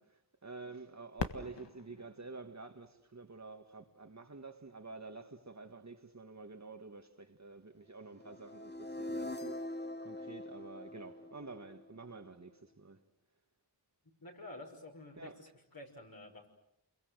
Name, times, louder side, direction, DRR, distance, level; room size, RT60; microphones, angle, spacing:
voice 1, 0.0-13.0 15.2-15.5, right 3 dB, 40° right, 1.8 m, -49 dB
Fireworks, 1.2-3.9 4.6-4.7 5.4-5.9 7.8-7.9, left 4 dB, 85° left, 1.8 m, -44 dB
sound 1, 8.2-12.2, left 1 dB, 25° left, 1.2 m, -43 dB
voice 2, 14.2-16.5, left 2 dB, 55° left, 5.8 m, -50 dB
29.5 x 23.0 x 7.9 m
wide cardioid pair, 75°, 41 cm